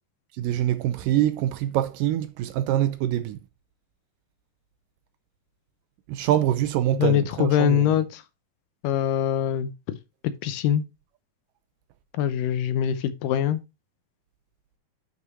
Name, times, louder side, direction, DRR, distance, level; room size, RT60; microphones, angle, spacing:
voice 1, 0.4-3.4 6.1-7.9, right 12 dB, 80° right, 2.1 m, -24 dB
voice 2, 7.0-8.2 8.8-10.0 10.4-10.9 12.2-13.6, left 9 dB, 75° left, 2.2 m, -23 dB
10.5 x 5.8 x 3.0 m
omnidirectional pair, 4.2 m